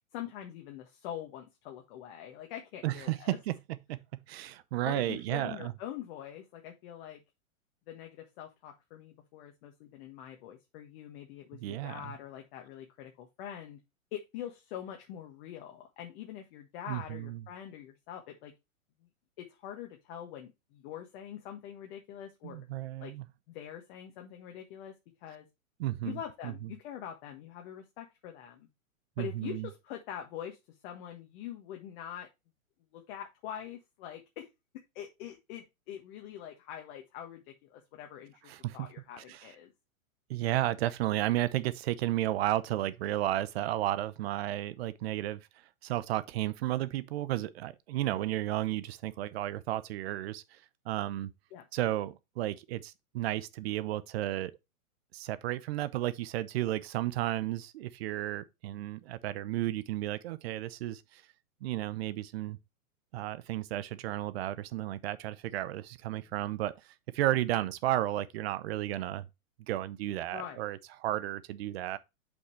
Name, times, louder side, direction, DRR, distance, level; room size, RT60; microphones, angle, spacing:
voice 1, 0.1-3.4 4.8-7.2 7.9-13.8 14.1-18.5 19.0-19.1 19.4-22.7 23.0-23.1 23.5-24.9 25.2-25.5 26.0-28.7 29.2-32.3 32.9-34.5 34.9-39.7 51.5-51.7 70.3-70.6, left 10 dB, 45° left, 1.6 m, -44 dB
voice 2, 2.8-3.6 3.9-5.7 11.6-12.1 16.9-17.4 22.4-23.2 25.8-26.2 26.4-26.5 29.2-29.7 38.5-38.9 39.3-39.4 40.3-45.5 45.8-50.6 50.8-51.3 51.7-54.5 55.1-61.2 61.6-62.6 63.1-66.7 67.1-69.2 69.7-72.0, right 14 dB, 45° right, 0.8 m, -33 dB
8.1 x 5.5 x 3.2 m
hypercardioid pair, 130°, 42 cm